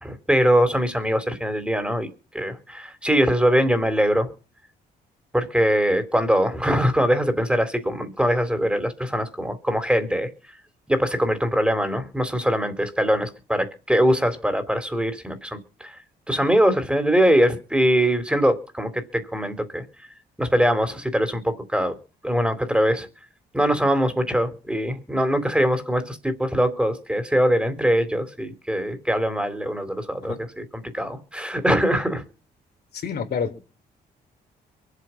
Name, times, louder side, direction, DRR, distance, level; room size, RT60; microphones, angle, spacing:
voice 1, 0.0-2.1 2.3-4.3 5.3-10.3 10.9-15.9 16.3-19.8 20.4-21.9 22.2-23.1 23.5-32.2, equal, 5° right, 3.7 m, -22 dB
voice 2, 33.0-33.6, left 6 dB, 65° left, 3.8 m, -28 dB
23.0 x 8.4 x 5.9 m
cardioid pair, 75°, 18 cm